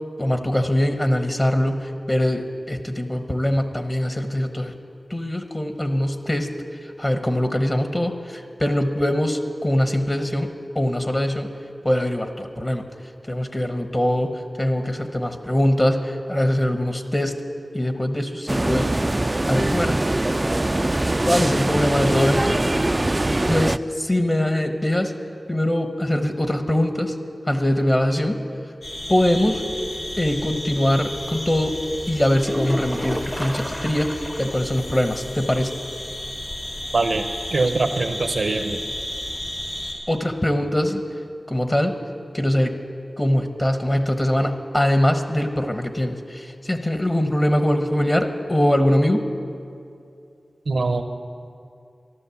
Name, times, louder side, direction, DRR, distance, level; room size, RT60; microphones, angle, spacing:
voice 1, 0.2-4.7 5.1-6.5 7.0-11.5 11.8-12.8 13.3-17.4 17.7-18.9 19.5-20.0 21.2-22.6 23.5-25.1 25.5-27.1 27.5-28.4 29.1-29.6 30.2-31.8 32.1-35.7 40.1-41.0 41.5-42.0 42.3-42.7 43.2-49.2, left 1 dB, 30° left, 6 dB, 1.1 m, -22 dB
Medellin Metro Busy Frequent Walla Quad, 18.5-23.8, right 1 dB, 30° right, 0.3 m, -22 dB
sound 1, 28.8-39.9, left 1 dB, 65° left, 3.9 m, -33 dB
sound 2, 32.3-34.6 34.9-35.0 35.5-35.6 39.4-39.5, equal, 5° left, 0.7 m, -31 dB
voice 2, 36.9-37.2 37.5-38.8 50.7-51.0, right 3 dB, 85° right, 7 dB, 0.8 m, -22 dB
14.0 x 11.5 x 7.1 m, 2.5 s
cardioid pair, 45°, 0 cm